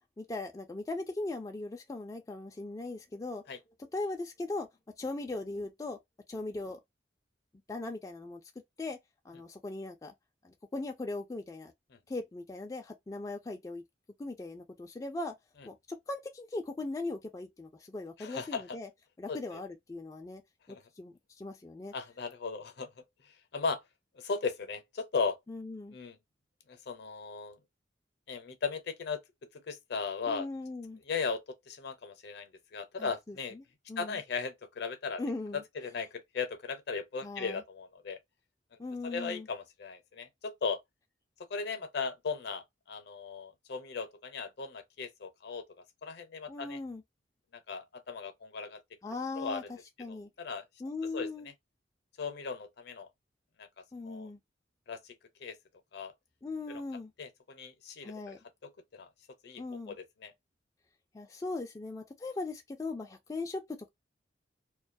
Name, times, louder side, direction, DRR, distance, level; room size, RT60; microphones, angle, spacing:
voice 1, 0.2-3.4 3.9-4.7 5.0-6.0 6.3-6.8 7.7-8.4 8.8-9.0 9.2-10.1 10.4-11.7 12.1-13.8 14.2-15.4 15.7-18.9 19.2-20.4 20.7-21.9 25.5-26.0 30.3-31.0 33.0-34.2 35.2-35.6 37.2-37.6 38.8-39.5 46.5-47.0 49.0-50.3 50.8-51.5 53.9-54.4 56.4-57.1 58.0-58.4 59.5-60.0 61.1-63.9, left 2 dB, 20° left, 0.3 m, -39 dB
voice 2, 18.2-18.6 19.3-19.6 20.7-20.8 21.9-22.9 23.2-23.8 24.2-25.4 25.9-26.2 26.7-27.6 28.3-30.5 31.0-33.6 34.0-35.2 35.5-38.2 38.7-40.8 41.5-45.7 46.0-46.8 47.5-48.8 49.3-49.7 50.1-50.6 51.1-51.5 52.2-53.1 53.6-53.7 54.0-54.3 54.9-55.6 55.9-56.1 56.7-56.8 57.2-58.4 58.6-59.1 59.4-60.3, left 5 dB, 65° left, 0.6 m, -37 dB
2.3 x 2.2 x 2.5 m
head